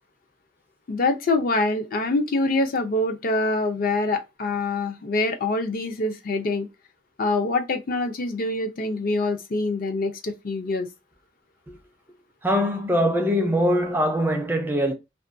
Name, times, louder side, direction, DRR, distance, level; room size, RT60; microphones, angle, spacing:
voice 1, 0.9-6.7 7.2-10.9, left 2 dB, 50° left, 0.5 m, -25 dB
voice 2, 12.4-14.9, equal, 10° right, 0.4 m, -22 dB
2.4 x 2.2 x 2.5 m
head